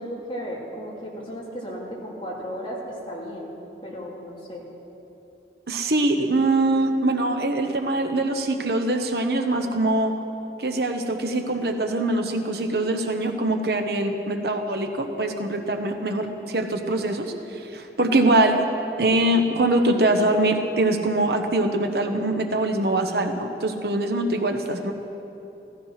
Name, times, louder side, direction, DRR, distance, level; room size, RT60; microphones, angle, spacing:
voice 1, 0.0-3.5 3.8-4.6, equal, 30° left, -5 dB, 3.1 m, -35 dB
voice 2, 5.7-10.1 10.6-17.3 17.5-18.6 19.0-24.9, right 2 dB, 60° right, 5 dB, 1.1 m, -23 dB
16.0 x 14.0 x 5.8 m, 2.9 s
head